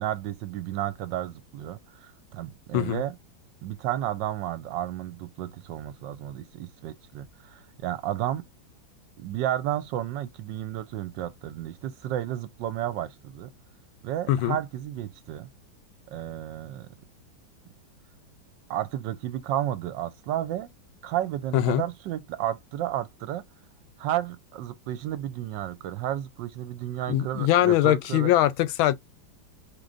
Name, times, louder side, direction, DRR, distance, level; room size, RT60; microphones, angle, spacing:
voice 1, 0.0-3.1 3.6-8.4 9.2-13.5 14.0-15.5 16.1-16.9 18.7-20.7 21.0-23.4 24.0-28.3, right 12 dB, 75° right, 1.2 m, -32 dB
voice 2, 21.5-21.8 27.1-28.9, left 13 dB, 85° left, 1.4 m, -22 dB
4.9 x 3.0 x 2.5 m
omnidirectional pair, 2.2 m